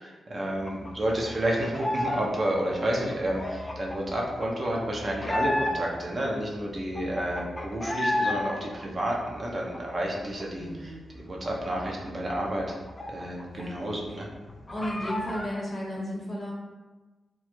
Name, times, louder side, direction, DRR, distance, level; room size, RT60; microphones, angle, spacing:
voice 1, 0.0-12.7 13.1-14.3, right 1 dB, 45° right, -2 dB, 0.5 m, -30 dB
voice 2, 0.6-1.0 10.5-11.0 13.5-14.0 14.7-16.5, equal, 45° left, -3 dB, 0.8 m, -35 dB
sound 1, 0.6-2.3 2.5-6.1 6.5-6.6 6.7-8.4 8.7-10.4 10.7-10.9 11.2-13.6 13.9-14.0 14.3-15.5, left 1 dB, 25° left, 0.3 m, -32 dB
2.2 x 2.0 x 2.9 m, 1.2 s
cardioid pair, 55°, 0 cm